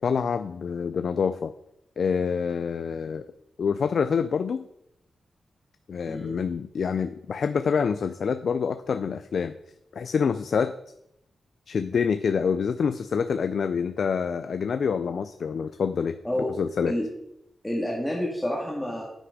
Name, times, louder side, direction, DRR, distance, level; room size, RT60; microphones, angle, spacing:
voice 1, 0.0-1.5 2.0-3.2 3.6-4.7 5.9-9.5 9.9-10.7 11.7-16.1 16.6-16.9, left 6 dB, 60° left, 11 dB, 0.4 m, -26 dB
voice 2, 6.1-6.4 16.2-16.5 16.9-17.1 17.6-19.0, left 1 dB, 5° left, -3 dB, 1.7 m, -28 dB
9.7 x 8.9 x 4.9 m, 0.81 s
wide cardioid pair, 155°, 0 cm